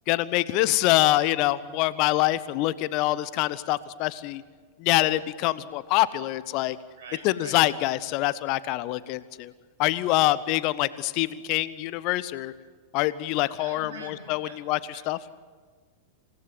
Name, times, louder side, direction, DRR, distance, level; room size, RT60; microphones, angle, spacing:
voice 1, 0.1-4.4 4.8-6.8 7.2-9.5 9.8-12.5 12.9-15.2, left 16 dB, 45° left, 17 dB, 0.7 m, -25 dB
voice 2, 7.0-7.6 13.6-14.6 14.9-15.0, right 3 dB, 60° right, 4 dB, 6.4 m, -44 dB
28.0 x 17.5 x 7.7 m, 1.5 s
figure-of-eight pair, 90°, 0 cm